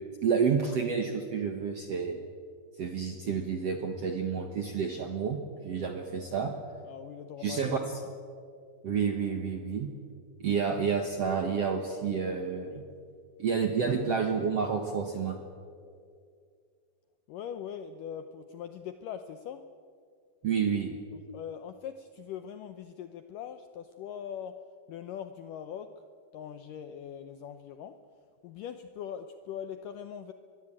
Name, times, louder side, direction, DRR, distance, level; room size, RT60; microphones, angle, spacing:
voice 1, 0.2-2.2 2.8-6.5 7.4-7.8 8.8-9.9 10.4-12.9 13.4-15.4 20.4-20.9, right 6 dB, 60° right, 5 dB, 1.6 m, -29 dB
voice 2, 6.8-7.8 12.7-12.8 17.3-19.7 21.1-26.0 26.3-28.0 28.4-30.3, left 8 dB, 80° left, 9 dB, 1.9 m, -41 dB
22.5 x 22.0 x 8.7 m, 2.3 s
omnidirectional pair, 4.8 m